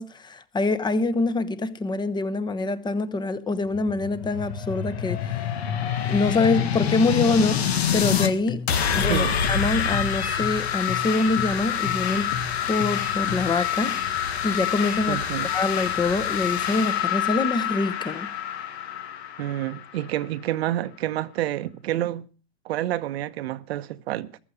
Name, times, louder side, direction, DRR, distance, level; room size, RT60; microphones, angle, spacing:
voice 1, 0.0-5.4 6.1-8.6 8.9-12.4 12.7-15.2 15.4-18.3, left 3 dB, 15° left, 1.0 m, -25 dB
sound 1, 3.7-8.3 8.7-20.2, left 8 dB, 90° left, 1.7 m, -27 dB
sound 2, 6.1-13.7, left 8 dB, 70° left, 2.2 m, -34 dB
voice 2, 9.1-9.4 15.1-15.5 19.4-22.3 22.6-24.3, right 13 dB, 85° right, 1.1 m, -28 dB
14.5 x 13.0 x 5.0 m
supercardioid pair, 125°, 31 cm